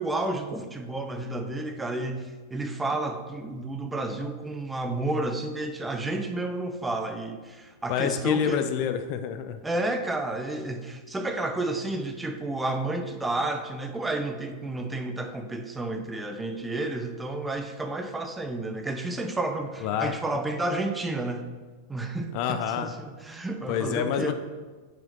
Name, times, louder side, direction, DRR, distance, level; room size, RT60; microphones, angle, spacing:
voice 1, 0.0-8.7 9.6-21.5 21.9-24.3, right 2 dB, 10° right, 6 dB, 0.7 m, -31 dB
voice 2, 7.9-9.6 19.8-20.1 22.3-22.9 23.7-24.3, left 9 dB, 45° left, 8 dB, 0.6 m, -27 dB
6.8 x 4.9 x 6.3 m, 1.4 s
figure-of-eight pair, 90°, 0 cm